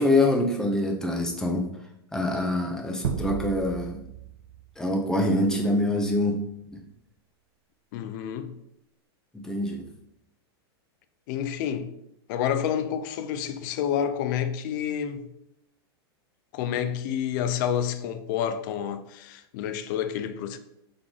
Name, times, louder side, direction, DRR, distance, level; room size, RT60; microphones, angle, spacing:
voice 1, 0.0-1.7 2.1-4.0 4.8-6.4 6.7-6.8 9.3-9.9, left 1 dB, 5° left, 0.6 m, -25 dB
sound 1, 3.0-5.6, right 9 dB, 85° right, 0.4 m, -34 dB
voice 2, 7.9-8.6 11.3-11.9 12.3-15.3 16.5-20.6, left 9 dB, 50° left, 0.4 m, -29 dB
3.9 x 3.2 x 3.6 m
supercardioid pair, 140°, 13 cm